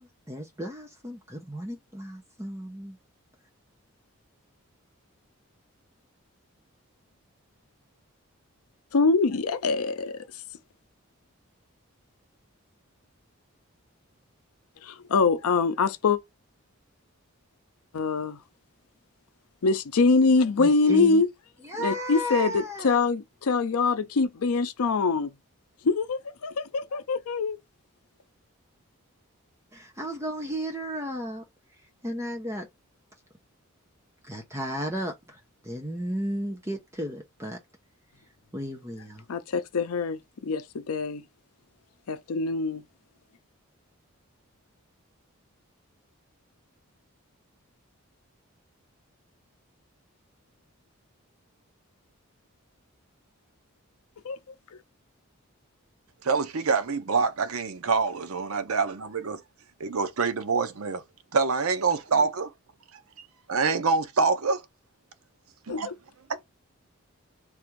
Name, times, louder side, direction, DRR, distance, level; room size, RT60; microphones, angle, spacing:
voice 1, 0.0-3.0 20.6-21.2 21.6-23.0 29.7-31.4 32.0-32.7 34.2-37.6 38.5-39.2, equal, 10° right, 0.7 m, -34 dB
voice 2, 8.9-10.2 14.8-16.2 17.9-18.4 19.6-21.3 21.8-25.3 25.8-27.6 39.3-41.2 42.1-42.8 54.2-54.4 65.7-65.9, left 4 dB, 80° left, 0.5 m, -24 dB
voice 3, 56.2-59.4 59.8-61.0 61.3-62.5 63.5-64.6 65.7-65.9, right 4 dB, 75° right, 0.6 m, -26 dB
3.4 x 2.6 x 4.5 m
head